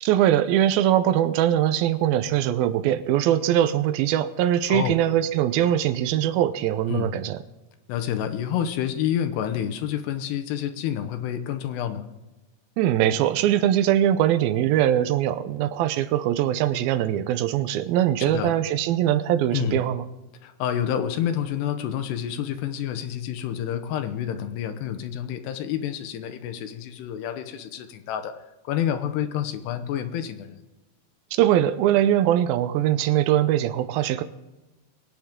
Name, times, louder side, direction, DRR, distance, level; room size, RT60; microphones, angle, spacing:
voice 1, 0.0-7.4 12.8-20.1 31.3-34.2, right 11 dB, 80° right, 13 dB, 2.3 m, -22 dB
voice 2, 7.9-12.1 18.3-18.5 19.5-19.8 20.4-30.6, left 10 dB, 85° left, 8 dB, 3.0 m, -28 dB
23.0 x 9.2 x 3.7 m, 1.1 s
omnidirectional pair, 4.7 m